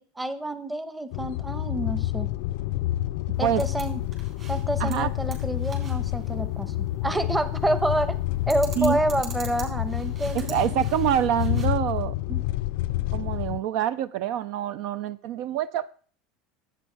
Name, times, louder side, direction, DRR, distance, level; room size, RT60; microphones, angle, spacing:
voice 1, 0.0-2.3 3.4-4.0 4.5-6.7 7.0-8.2 8.5-10.6 12.3-12.4, right 1 dB, 10° right, 0.9 m, -28 dB
sound 1, 1.1-13.6, left 15 dB, 70° left, 0.4 m, -28 dB
sound 2, 3.3-11.7, right 4 dB, 35° right, 3.9 m, -45 dB
voice 2, 10.3-12.1 13.1-15.9, right 11 dB, 65° right, 0.4 m, -26 dB
11.5 x 8.5 x 3.3 m
supercardioid pair, 110°, 0 cm